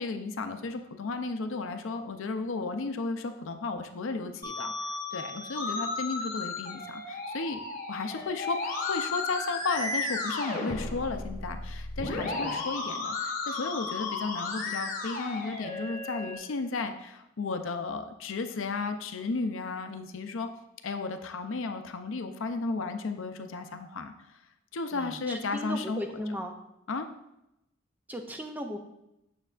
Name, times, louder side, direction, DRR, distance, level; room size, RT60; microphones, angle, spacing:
voice 1, 0.0-7.6 7.9-20.5 20.8-24.1 24.7-26.2 26.9-27.1, left 3 dB, 65° left, 7 dB, 0.5 m, -34 dB
Musical instrument, 4.4-16.4, left 3 dB, 40° left, 0.9 m, -34 dB
voice 2, 12.2-12.6 24.9-26.5 28.1-28.8, equal, 10° right, 4 dB, 0.4 m, -37 dB
6.6 x 6.6 x 2.4 m, 0.87 s
head